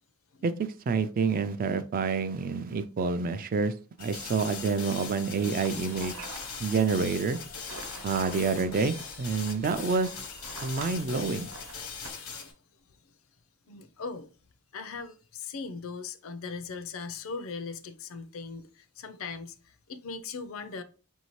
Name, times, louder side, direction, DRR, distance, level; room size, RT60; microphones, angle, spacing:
voice 1, 0.4-6.3 6.6-7.4 8.0-10.1 10.6-11.5, right 4 dB, 40° right, 0.3 m, -28 dB
sound 1, 4.0-12.5, left 6 dB, 90° left, 0.9 m, -41 dB
sound 2, 5.6-12.1, right 3 dB, 80° right, 0.9 m, -47 dB
voice 2, 13.7-14.3 14.7-20.8, left 4 dB, 70° left, 0.5 m, -39 dB
4.9 x 2.7 x 3.0 m
head